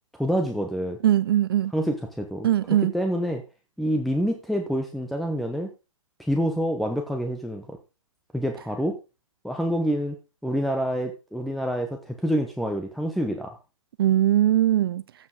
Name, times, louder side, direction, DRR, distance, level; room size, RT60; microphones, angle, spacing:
voice 1, 0.2-1.0 1.7-2.5 2.9-3.4 3.8-5.7 6.3-7.8 8.3-9.0 9.4-10.2 10.4-13.5, equal, ahead, 0.9 m, -27 dB
voice 2, 1.0-1.7 2.4-2.9 14.0-15.0, right 12 dB, 45° right, 0.5 m, -20 dB
14.5 x 7.5 x 3.9 m
hypercardioid pair, 135°, 17 cm